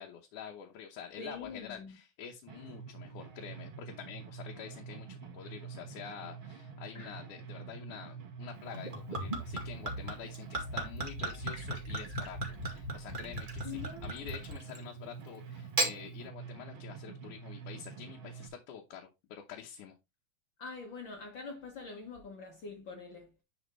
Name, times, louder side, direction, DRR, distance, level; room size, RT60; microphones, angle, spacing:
voice 1, 0.0-20.0, left 8 dB, 85° left, 2.5 m, -47 dB
voice 2, 1.2-2.0 6.9-7.1 13.6-14.1 20.6-23.3, left 4 dB, 50° left, 1.6 m, -44 dB
sound 1, 2.5-18.5, right 6 dB, 50° right, 1.9 m, -47 dB
Gurgling / Chink clink / Liquid, 8.7-14.9 15.6-16.0, right 1 dB, 20° right, 1.7 m, -37 dB
10.5 x 4.5 x 3.2 m
omnidirectional pair, 3.5 m